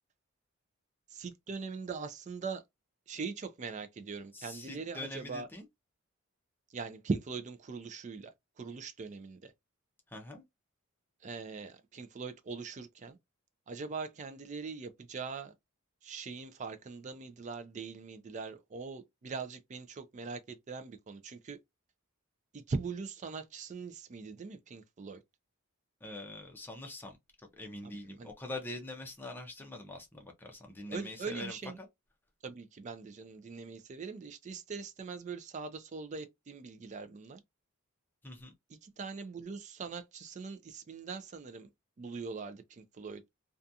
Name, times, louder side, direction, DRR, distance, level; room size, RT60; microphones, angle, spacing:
voice 1, 1.1-2.6 3.1-5.5 6.7-8.3 8.6-9.5 11.2-13.2 13.7-15.5 16.0-21.6 22.5-25.2 27.8-28.3 30.9-31.8 32.4-37.4 38.7-41.7 42.0-43.3, right 4 dB, 35° right, 0.3 m, -41 dB
voice 2, 4.3-5.6 10.1-10.4 26.0-27.2 27.6-31.6 38.2-38.5, left 2 dB, 10° left, 0.6 m, -44 dB
2.4 x 2.3 x 2.6 m
head